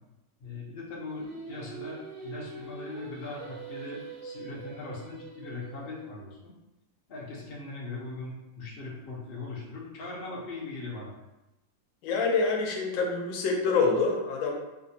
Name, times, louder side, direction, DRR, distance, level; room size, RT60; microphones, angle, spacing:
voice 1, 0.4-6.5 7.1-11.1, left 3 dB, 50° left, -5 dB, 0.7 m, -40 dB
Singing, 1.0-6.1, right 5 dB, 75° right, 1.5 m, -44 dB
voice 2, 12.0-14.5, left 4 dB, 90° left, 1 dB, 1.4 m, -26 dB
3.5 x 2.5 x 2.7 m, 1.0 s
omnidirectional pair, 2.0 m